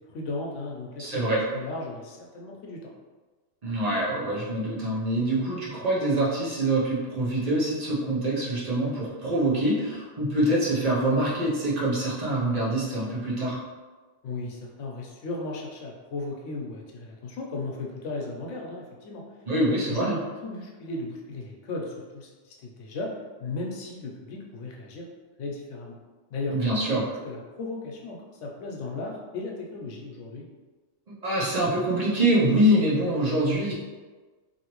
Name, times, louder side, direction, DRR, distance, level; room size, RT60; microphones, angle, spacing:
voice 1, 0.1-2.8 14.2-19.2 19.8-23.1 23.4-25.1 25.4-26.0 26.3-26.6 26.9-27.0 27.2-30.5, left 2 dB, 90° left, -1 dB, 1.0 m, -36 dB
voice 2, 1.0-1.4 3.6-13.6 19.5-20.2 26.5-27.0 31.2-33.7, right 1 dB, 40° right, -6 dB, 0.8 m, -25 dB
2.8 x 2.7 x 2.9 m, 1.3 s
omnidirectional pair, 1.2 m